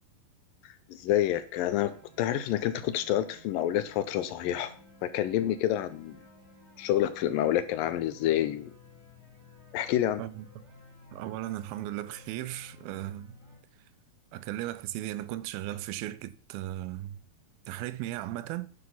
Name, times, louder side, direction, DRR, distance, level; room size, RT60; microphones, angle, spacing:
voice 1, 0.6-4.7 5.0-6.2 6.8-8.7 9.7-10.2, left 12 dB, 75° left, 2.3 m, -28 dB
sound 1, 1.7-13.6, left 2 dB, 15° right, 5.1 m, -55 dB
voice 2, 11.1-13.4 14.3-17.2 17.7-18.7, right 14 dB, 80° right, 2.5 m, -36 dB
10.0 x 9.5 x 5.6 m
omnidirectional pair, 4.4 m